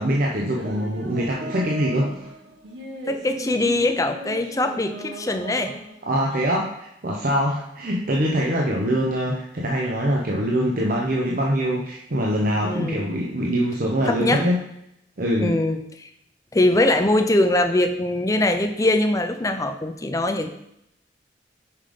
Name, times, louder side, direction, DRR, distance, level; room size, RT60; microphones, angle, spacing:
voice 1, 0.0-2.3 6.0-14.6 15.2-15.6, equal, 55° right, -1 dB, 0.8 m, -23 dB
sound 1, 0.5-6.4, right 1 dB, 90° right, 1.2 m, -37 dB
voice 2, 3.1-5.7 12.6-13.1 14.1-14.4 15.4-16.1 16.5-20.5, left 1 dB, 20° left, 7 dB, 0.5 m, -22 dB
5.7 x 5.1 x 5.1 m, 0.79 s
head